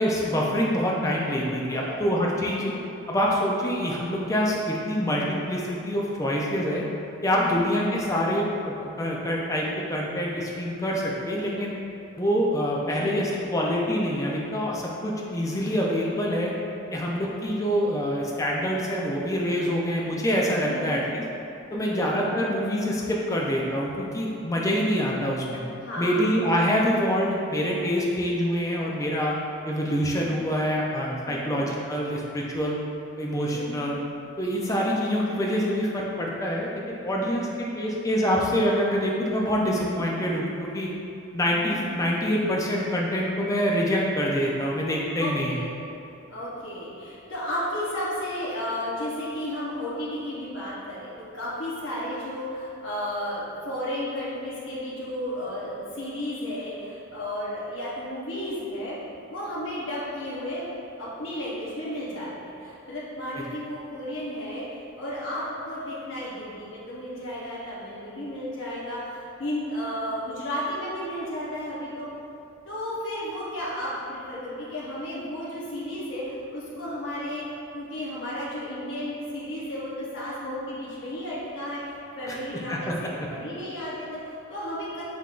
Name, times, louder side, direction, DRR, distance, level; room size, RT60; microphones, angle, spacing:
voice 1, 0.0-2.7 3.1-6.8 7.2-11.8 12.2-16.5 16.9-21.2 21.7-25.6 26.0-29.3 29.6-32.8 33.2-34.0 34.4-40.9 41.3-45.6 82.3-82.4 82.7-82.8, equal, 15° left, -3 dB, 0.4 m, -26 dB
voice 2, 1.6-2.0 2.6-2.7 7.3-7.6 12.9-13.2 20.7-21.1 21.7-22.1 25.8-26.4 30.2-30.4 31.3-31.6 33.5-33.9 41.7-42.1 45.2-45.7 46.3-59.0 59.3-60.7 61.0-72.1 72.7-77.4 77.7-85.0, left 1 dB, 70° left, -8 dB, 0.8 m, -33 dB
5.6 x 3.5 x 2.5 m, 2.7 s
head